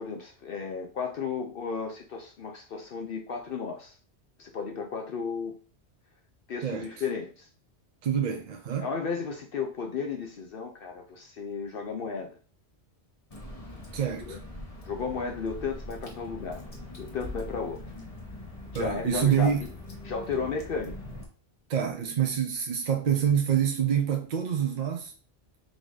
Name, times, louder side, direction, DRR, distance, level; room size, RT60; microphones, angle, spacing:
voice 1, 0.0-4.0 4.4-5.6 6.5-7.5 8.8-12.4 14.2-14.4 14.8-16.6 17.0-17.8 18.7-19.7 20.0-21.0, left 5 dB, 60° left, 0.8 m, -34 dB
voice 2, 8.0-8.9 13.9-14.4 18.7-19.6 21.7-25.1, right 8 dB, 55° right, 0.5 m, -26 dB
Water / Drip, 13.3-21.2, left 1 dB, 35° left, 1.1 m, -42 dB
3.9 x 2.6 x 4.7 m
omnidirectional pair, 1.1 m